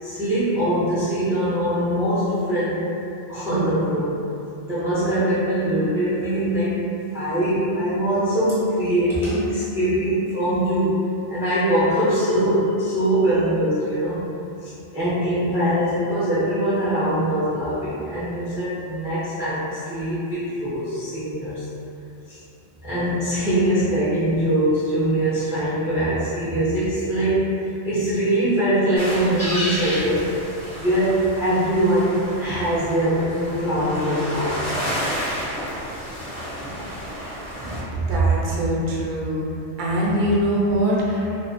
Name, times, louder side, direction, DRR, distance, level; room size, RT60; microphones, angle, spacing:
voice 1, 0.0-2.8 3.3-4.2 4.7-6.9 7.1-11.0 11.3-14.2 14.6-21.7 22.3-22.4 22.8-27.5 27.8-30.3 30.8-34.6 36.6-36.8 37.2-37.9, right 1 dB, 5° right, -12 dB, 0.4 m, -22 dB
sound 1, 29.0-37.8, equal, 35° left, 0.7 m, -31 dB
voice 2, 37.9-39.4 39.8-41.3, right 1 dB, 60° right, -6 dB, 0.5 m, -22 dB
2.3 x 2.1 x 2.5 m, 2.7 s
omnidirectional pair, 1.2 m